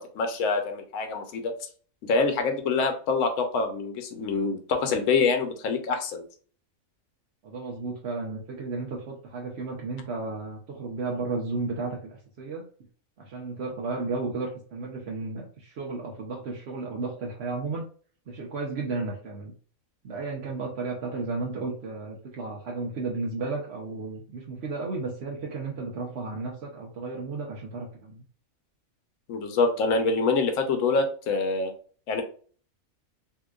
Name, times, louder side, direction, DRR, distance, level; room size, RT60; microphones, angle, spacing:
voice 1, 0.0-1.5 2.1-6.2 29.3-31.7 32.1-32.2, left 4 dB, 65° left, 6 dB, 1.0 m, -25 dB
voice 2, 7.4-12.6 13.2-17.9 18.3-19.5 20.0-28.2, right 3 dB, 55° right, -1 dB, 0.8 m, -33 dB
3.6 x 2.9 x 2.3 m, 0.42 s
omnidirectional pair, 1.5 m